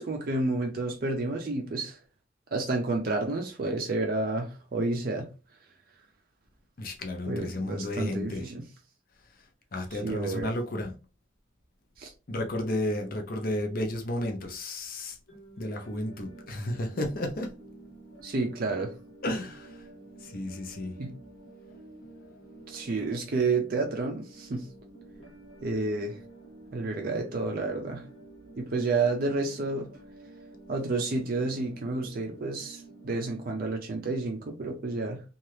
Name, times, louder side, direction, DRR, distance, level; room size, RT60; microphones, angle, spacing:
voice 1, 0.0-2.0 2.5-5.3 7.3-8.6 9.9-10.5 12.0-12.1 18.2-18.9 21.0-21.1 22.7-24.7 25.6-26.2 26.7-28.0 28.6-29.9 30.7-35.2, right 3 dB, 50° right, 0.5 m, -30 dB
voice 2, 6.8-8.5 9.7-10.9 12.3-15.2 15.6-17.5 19.2-19.8 20.2-20.9, left 1 dB, 50° left, 0.6 m, -32 dB
sound 1, 15.3-33.7, right 2 dB, 80° left, 1.1 m, -50 dB
2.8 x 2.3 x 3.2 m
head